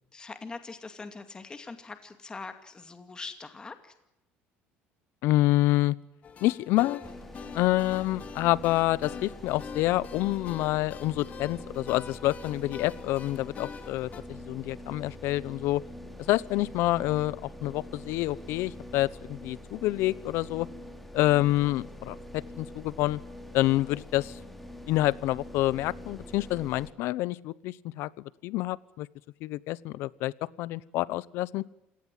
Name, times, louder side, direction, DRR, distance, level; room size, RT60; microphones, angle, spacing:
voice 1, 0.1-3.9, left 4 dB, 20° left, 8 dB, 2.4 m, -42 dB
voice 2, 5.2-6.0 6.4-7.0 7.5-15.8 16.2-20.7 21.1-23.2 23.5-24.4 24.9-29.1 29.4-30.3 30.6-31.6, left 17 dB, 70° left, 21 dB, 0.9 m, -27 dB
sound 1, 6.2-14.2, left 6 dB, 35° left, 2.6 m, -45 dB
sound 2, 7.0-26.9, left 1 dB, 5° left, 3.1 m, -44 dB
27.5 x 18.5 x 7.6 m, 0.90 s
cardioid pair, 130°, 4 cm